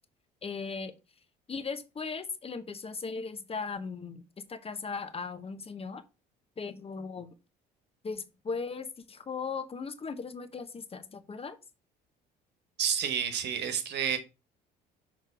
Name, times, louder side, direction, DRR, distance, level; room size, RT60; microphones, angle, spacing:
voice 1, 0.4-0.9 1.5-4.2 4.5-6.0 6.6-7.3 8.0-11.6, left 4 dB, 30° left, 0.9 m, -37 dB
voice 2, 12.8-14.2, right 8 dB, 60° right, 1.2 m, -29 dB
6.5 x 3.1 x 5.0 m
supercardioid pair, 75°, 19 cm